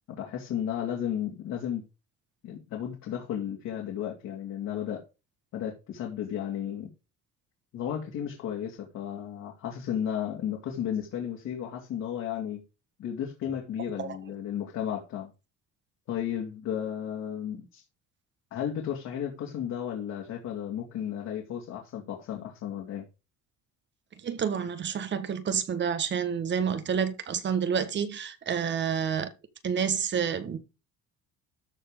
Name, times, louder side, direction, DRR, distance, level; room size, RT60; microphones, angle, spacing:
voice 1, 0.1-1.8 2.4-5.0 5.5-6.9 7.7-12.6 13.0-15.3 16.1-17.8 18.5-23.0, left 9 dB, 65° left, 2.7 m, -33 dB
voice 2, 24.2-29.3 29.6-30.6, right 7 dB, 40° right, 1.5 m, -29 dB
13.0 x 4.4 x 5.0 m
cardioid pair, 140°, 30 cm